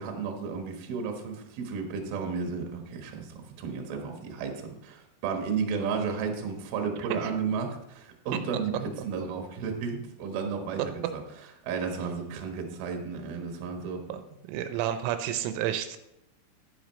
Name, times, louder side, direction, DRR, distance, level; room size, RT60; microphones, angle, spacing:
voice 1, 0.0-11.2 11.6-14.0, right 5 dB, 65° right, 3 dB, 2.7 m, -33 dB
voice 2, 14.5-16.0, right 11 dB, 85° right, 8 dB, 3.3 m, -30 dB
11.0 x 10.0 x 3.1 m, 0.85 s
omnidirectional pair, 5.8 m